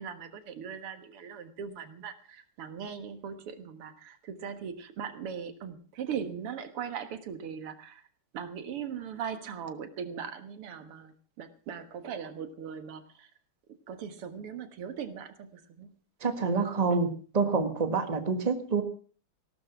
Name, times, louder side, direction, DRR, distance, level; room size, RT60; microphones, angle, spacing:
voice 1, 0.0-8.1 8.3-13.3 13.9-15.9, right 7 dB, 85° right, 10 dB, 2.4 m, -39 dB
voice 2, 16.2-18.8, right 4 dB, 20° right, 8 dB, 1.4 m, -27 dB
17.0 x 12.5 x 5.9 m, 0.42 s
omnidirectional pair, 2.4 m